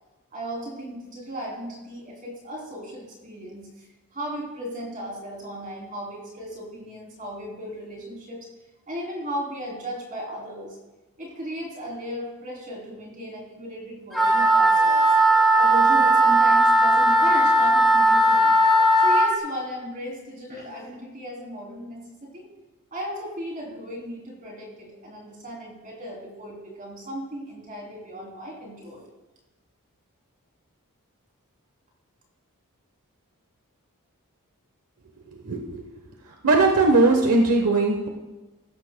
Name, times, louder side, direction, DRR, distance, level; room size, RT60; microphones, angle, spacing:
voice 1, 0.3-3.9 4.1-8.5 8.9-10.8 11.2-15.2 15.6-18.6 19.0-22.5 22.9-29.1, equal, 35° right, -2 dB, 3.2 m, -36 dB
Wind instrument woodwind instrument, 14.1-19.3, right 1 dB, ahead, 2.3 m, -17 dB
voice 2, 35.3-35.9 36.4-38.1, right 3 dB, 90° right, 2 dB, 1.1 m, -20 dB
15.0 x 14.5 x 2.2 m, 1.1 s
head